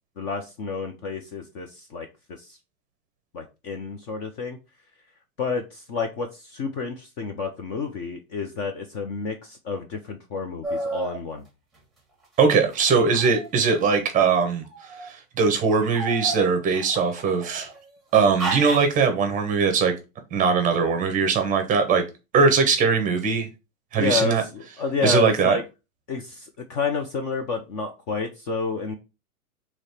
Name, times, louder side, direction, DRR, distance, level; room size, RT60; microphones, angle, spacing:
voice 1, 0.2-2.1 2.4-2.6 3.3-4.6 5.4-11.4 24.0-25.6 26.1-28.9, left 4 dB, 30° left, 0.5 m, -29 dB
sound 1, 10.6-11.2 12.7-13.9 14.6-15.1 15.7-17.8 18.4-19.0, right 2 dB, ahead, 1.4 m, -33 dB
voice 2, 12.4-17.7 18.1-19.9 20.3-22.0 22.3-23.5 23.9-24.4 25.0-25.6, right 5 dB, 20° right, 0.8 m, -21 dB
3.2 x 2.9 x 4.2 m
hypercardioid pair, 135°, 44 cm